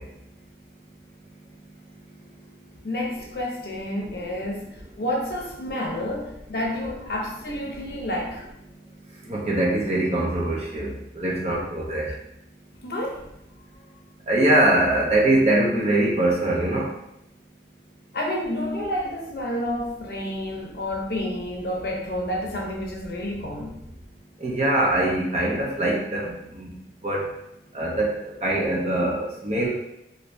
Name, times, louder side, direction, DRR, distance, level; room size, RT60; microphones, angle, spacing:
voice 1, 2.8-8.4 11.4-11.6 12.8-13.3 18.1-23.8, left 1 dB, 60° left, -1 dB, 0.6 m, -30 dB
voice 2, 9.3-12.1 14.3-16.9 24.4-26.7 27.0-27.2 27.7-28.1 28.4-29.7, right 1 dB, 35° right, -3 dB, 0.7 m, -22 dB
3.2 x 2.6 x 2.6 m, 0.82 s
head